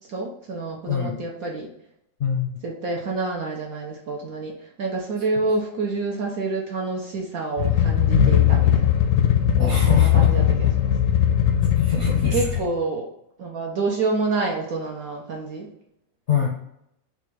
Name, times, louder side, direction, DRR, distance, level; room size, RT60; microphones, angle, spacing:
voice 1, 0.1-1.7 2.6-8.8 9.6-10.9 12.2-13.1 13.4-15.7, right 3 dB, 65° right, -1 dB, 1.0 m, -28 dB
voice 2, 2.2-2.6 9.6-10.3 11.7-12.5 16.3-16.5, left 6 dB, 55° left, -2 dB, 0.7 m, -25 dB
sound 1, 7.6-12.6, left 10 dB, 75° left, 1.2 m, -19 dB
4.2 x 2.4 x 4.6 m, 0.77 s
omnidirectional pair, 2.0 m